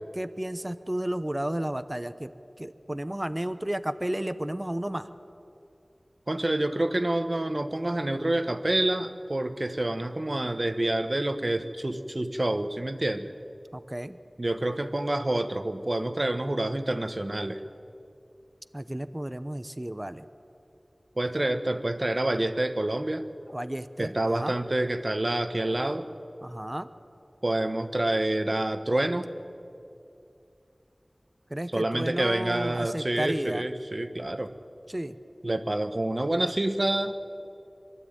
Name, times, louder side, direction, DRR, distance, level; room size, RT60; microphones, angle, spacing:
voice 1, 0.1-2.3 2.6-5.1 13.7-14.2 18.7-20.3 23.5-24.6 26.4-26.9 31.5-33.7 34.9-35.2, right 1 dB, 25° right, 12 dB, 0.8 m, -32 dB
voice 2, 6.3-13.3 14.4-17.6 21.2-23.3 24.0-26.1 27.4-29.3 31.7-34.5 35.4-37.1, right 1 dB, 50° right, 9 dB, 1.2 m, -27 dB
23.5 x 12.5 x 9.2 m, 2.6 s
wide cardioid pair, 40°, 0 cm